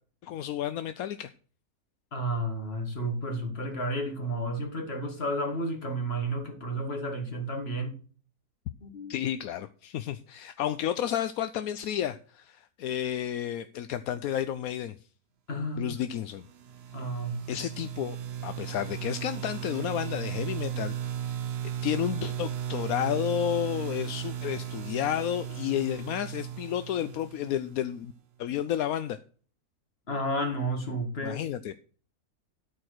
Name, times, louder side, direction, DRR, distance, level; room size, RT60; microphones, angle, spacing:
voice 1, 0.2-1.3 9.1-15.0 15.8-16.5 17.5-18.2 18.4-20.9 21.8-28.1 28.4-29.2 31.2-31.7, left 11 dB, 80° left, 1.1 m, -31 dB
voice 2, 2.1-7.9 8.8-9.1 15.5-16.0 16.9-17.4 30.1-31.4, right 1 dB, 45° left, 2.2 m, -32 dB
sound 1, 16.3-28.1, right 10 dB, 55° right, 0.9 m, -36 dB
13.0 x 4.6 x 6.5 m
omnidirectional pair, 1.5 m